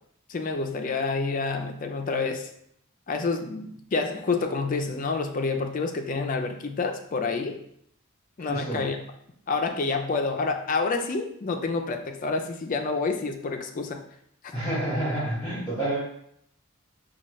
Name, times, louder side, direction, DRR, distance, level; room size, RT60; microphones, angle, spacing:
voice 1, 0.3-2.5 3.1-7.6 8.4-9.0 9.5-14.0, left 4 dB, 40° left, 5 dB, 0.4 m, -28 dB
voice 2, 8.5-8.8 14.5-16.0, right 1 dB, 10° left, -11 dB, 1.4 m, -28 dB
5.4 x 2.3 x 3.1 m, 0.71 s
head